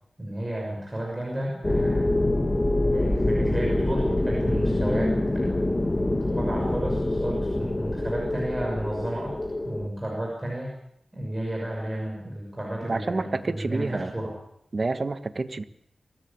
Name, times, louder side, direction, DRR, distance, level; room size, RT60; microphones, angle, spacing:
voice 1, 0.2-2.1 2.8-5.6 6.1-9.4 9.6-10.7 11.1-14.3, right 1 dB, 15° right, -2 dB, 6.3 m, -32 dB
sound 1, 1.6-9.9, left 1 dB, 25° left, 1.9 m, -25 dB
voice 2, 12.9-14.1 14.7-15.6, right 3 dB, 40° right, 10 dB, 1.4 m, -28 dB
24.5 x 18.0 x 8.8 m, 0.76 s
wide cardioid pair, 115°, 0 cm